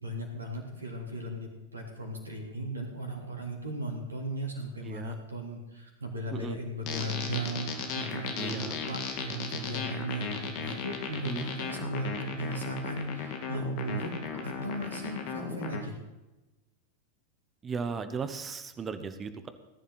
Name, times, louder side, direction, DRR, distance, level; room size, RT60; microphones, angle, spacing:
voice 1, 0.0-14.2 14.4-16.0, right 1 dB, 75° right, 1 dB, 3.3 m, -36 dB
voice 2, 4.8-5.1 6.3-6.6 8.4-8.8 11.2-11.4 17.6-19.5, right 5 dB, 20° right, 10 dB, 1.1 m, -36 dB
sound 1, 6.9-15.8, left 6 dB, 40° left, 2.1 m, -36 dB
18.5 x 10.5 x 4.1 m, 1.0 s
figure-of-eight pair, 90°, 0 cm